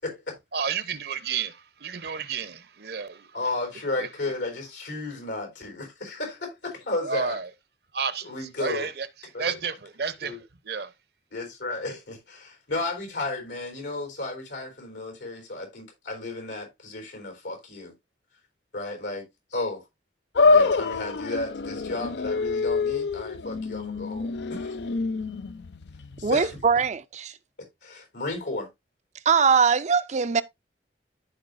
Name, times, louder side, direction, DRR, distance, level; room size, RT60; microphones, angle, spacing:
voice 1, 0.0-0.4 3.3-7.4 8.2-8.9 9.3-9.6 10.2-10.4 11.3-17.9 18.7-19.8 20.4-24.8 26.2-26.8 27.6-28.7, left 2 dB, 90° left, 4.1 m, -33 dB
voice 2, 0.5-3.3 4.0-4.1 7.0-7.5 7.9-8.3 8.6-9.1 9.4-10.4 10.6-10.9, right 6 dB, 60° right, 0.8 m, -31 dB
sound 1, 20.4-26.8, left 4 dB, 75° left, 0.5 m, -26 dB
voice 3, 26.2-27.4 29.3-30.4, right 6 dB, 40° right, 0.4 m, -21 dB
14.0 x 4.8 x 2.6 m
head